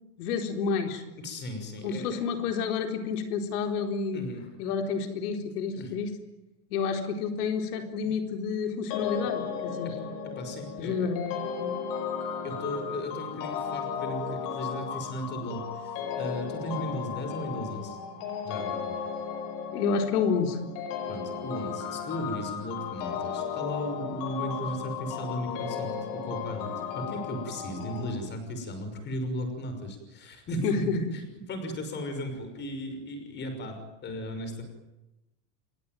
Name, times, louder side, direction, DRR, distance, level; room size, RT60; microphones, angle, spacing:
voice 1, 0.2-1.0 1.8-4.2 4.6-6.1 6.7-9.9 10.8-11.8 19.7-20.6 30.6-31.0, left 5 dB, 80° left, 5 dB, 4.2 m, -29 dB
voice 2, 1.2-2.2 4.1-4.5 5.7-5.9 8.0-8.1 9.8-10.0 10.4-11.1 12.4-18.0 18.4-18.9 21.1-34.6, equal, 25° left, 7 dB, 6.0 m, -36 dB
sound 1, 8.9-28.1, left 7 dB, 45° left, 5.6 m, -35 dB
27.5 x 22.5 x 9.3 m, 0.98 s
supercardioid pair, 170°, 45 cm